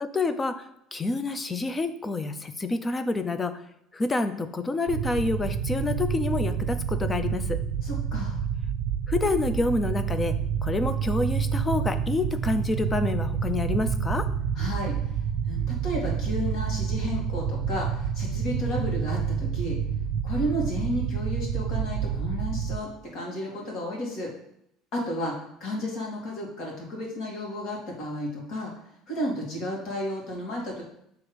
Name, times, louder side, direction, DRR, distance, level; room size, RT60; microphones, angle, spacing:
voice 1, 0.0-3.5 3.9-7.6 9.1-10.3 10.6-14.3, left 3 dB, 15° left, 10 dB, 0.4 m, -28 dB
sound 1, 4.9-22.8, right 7 dB, 75° right, 0.6 m, -28 dB
voice 2, 7.8-8.4 14.6-15.1 15.4-19.8 20.2-24.3 24.9-28.7 29.1-30.8, left 1 dB, 55° left, -2 dB, 2.1 m, -32 dB
6.2 x 3.5 x 5.0 m, 0.74 s
cardioid pair, 155°, 0 cm